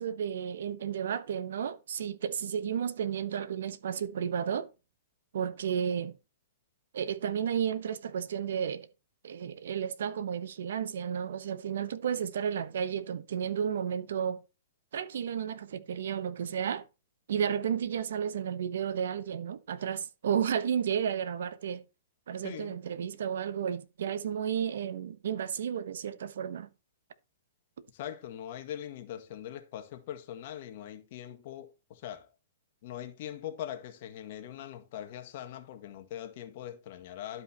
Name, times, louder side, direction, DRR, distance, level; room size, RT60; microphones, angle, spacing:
voice 1, 0.0-4.7 5.3-6.2 6.9-8.9 9.2-14.4 14.9-16.8 17.3-21.8 22.3-26.7, right 8 dB, 75° right, 1.1 m, -32 dB
voice 2, 22.4-22.8 27.9-32.3 32.8-37.4, left 11 dB, 50° left, 1.8 m, -42 dB
12.0 x 5.5 x 4.4 m
hypercardioid pair, 145°, 0 cm